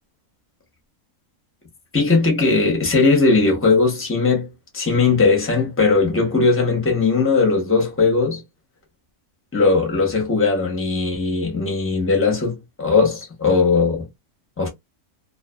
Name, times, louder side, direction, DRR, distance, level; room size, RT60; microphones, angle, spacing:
voice 1, 1.9-4.5 4.7-8.4 9.5-14.1 14.6-14.7, left 4 dB, 15° left, 0.6 m, -18 dB
2.4 x 2.4 x 2.2 m
omnidirectional pair, 1.6 m